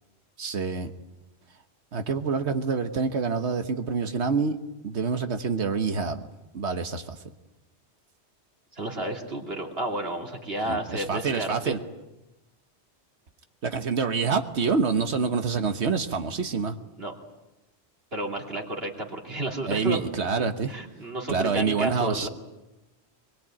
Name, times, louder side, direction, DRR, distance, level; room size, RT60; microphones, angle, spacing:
voice 1, 0.4-0.9 1.9-4.6 4.8-6.2 6.5-7.2 10.6-11.8 13.6-16.7 19.7-20.7 21.3-22.3, right 5 dB, 85° right, 7 dB, 1.5 m, -26 dB
voice 2, 8.7-11.8 17.0-17.1 18.1-20.0 20.7-22.3, right 1 dB, 65° right, 1 dB, 3.2 m, -31 dB
23.5 x 22.0 x 8.9 m, 0.99 s
omnidirectional pair, 1.1 m